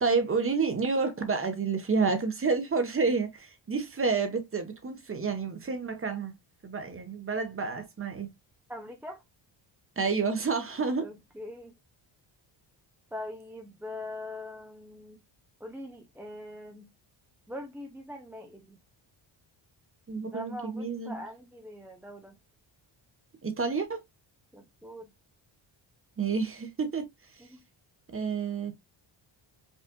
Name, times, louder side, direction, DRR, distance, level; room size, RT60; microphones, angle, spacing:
voice 1, 0.0-6.4 6.6-8.3 10.0-11.1 20.1-21.2 23.4-24.0 26.2-27.0 28.1-28.8, right 4 dB, 25° right, 1.0 m, -29 dB
voice 2, 8.7-9.2 11.0-11.7 13.1-15.2 15.6-16.9 17.5-18.8 20.2-22.4 24.5-25.1 27.4-27.6, left 1 dB, 5° right, 0.5 m, -42 dB
5.4 x 2.5 x 2.2 m
cardioid pair, 95°, 48 cm